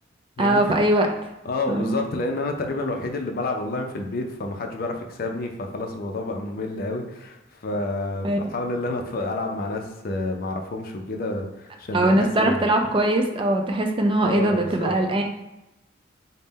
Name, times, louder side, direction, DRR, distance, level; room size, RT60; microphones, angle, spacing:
voice 1, 0.4-1.1 1.7-2.0 8.2-8.4 11.9-15.2, right 1 dB, 25° right, 3 dB, 0.4 m, -21 dB
voice 2, 1.5-12.6 14.2-14.9, left 2 dB, 50° left, 3 dB, 0.5 m, -29 dB
3.6 x 2.1 x 4.0 m, 0.98 s
head